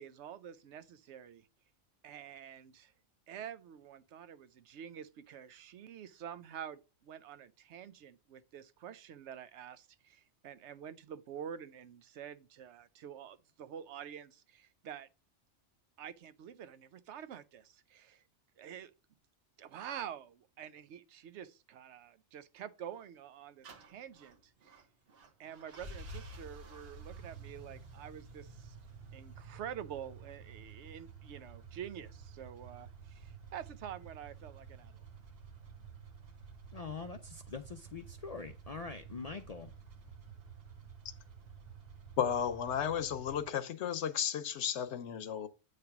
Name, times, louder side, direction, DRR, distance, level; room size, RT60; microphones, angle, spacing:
voice 1, 0.0-1.5 2.0-2.9 3.3-15.1 16.0-18.2 18.6-18.9 19.6-24.8 25.4-28.8 29.1-35.0, right 9 dB, 75° right, 0.8 m, -47 dB
sound 1, 23.6-43.5, right 4 dB, 60° right, 1.1 m, -51 dB
voice 2, 36.7-39.7, left 4 dB, 50° left, 0.4 m, -44 dB
voice 3, 42.2-45.5, left 8 dB, 75° left, 1.0 m, -33 dB
8.3 x 3.3 x 5.8 m
omnidirectional pair, 1.2 m